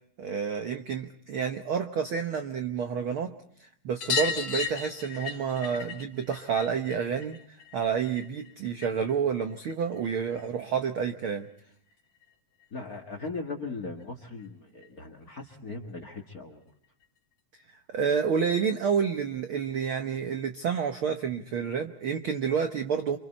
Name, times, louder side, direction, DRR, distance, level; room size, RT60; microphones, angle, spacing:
voice 1, 0.2-3.3 3.6-7.4 7.7-11.5 17.7-23.2, right 6 dB, 75° right, 7 dB, 1.2 m, -29 dB
sound 1, 4.0-9.1 9.4-10.5 11.9-12.0 12.2-12.3 12.6-12.7 14.0-14.1 14.4-14.5 14.8-14.9 16.1-16.2 17.0-17.1, left 6 dB, 55° left, 3.9 m, -36 dB
voice 2, 12.7-16.6, left 3 dB, 35° left, 8 dB, 1.6 m, -38 dB
28.5 x 26.0 x 4.3 m, 0.69 s
omnidirectional pair, 3.9 m